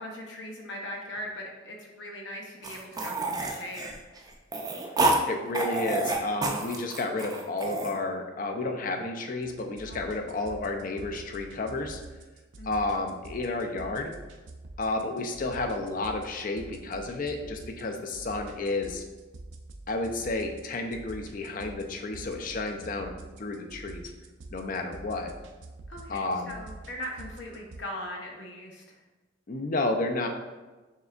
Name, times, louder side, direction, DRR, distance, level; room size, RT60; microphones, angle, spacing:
voice 1, 0.0-3.9 9.8-10.1 12.6-13.0 25.9-29.0, equal, 70° left, -1 dB, 0.9 m, -40 dB
sound 1, 2.6-5.2 5.5-7.9, right 2 dB, 20° right, 0.4 m, -28 dB
voice 2, 5.3-12.0 12.6-14.1 14.8-19.0 19.9-23.1 23.4-24.0 24.5-25.3 26.1-26.6 29.5-30.3, left 2 dB, 45° left, 4 dB, 0.5 m, -31 dB
sound 2, 9.4-27.8, right 2 dB, 70° right, 0.5 m, -47 dB
6.4 x 3.3 x 2.4 m, 1.2 s
head